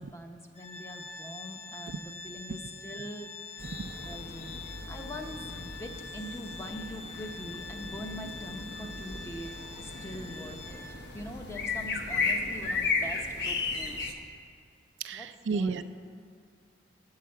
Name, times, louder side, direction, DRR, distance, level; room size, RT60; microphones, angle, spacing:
voice 1, 0.0-3.8 4.0-4.6 4.9-9.5 9.8-10.8 11.1-14.1 15.1-15.8, equal, 15° left, 4 dB, 0.7 m, -43 dB
Organ, 0.5-11.2, left 4 dB, 30° left, 1.5 m, -45 dB
sound 1, 3.6-14.1, left 4 dB, 60° left, 0.8 m, -35 dB
voice 2, 15.0-15.8, right 4 dB, 70° right, 12 dB, 0.4 m, -31 dB
9.2 x 5.7 x 7.6 m, 2.2 s
head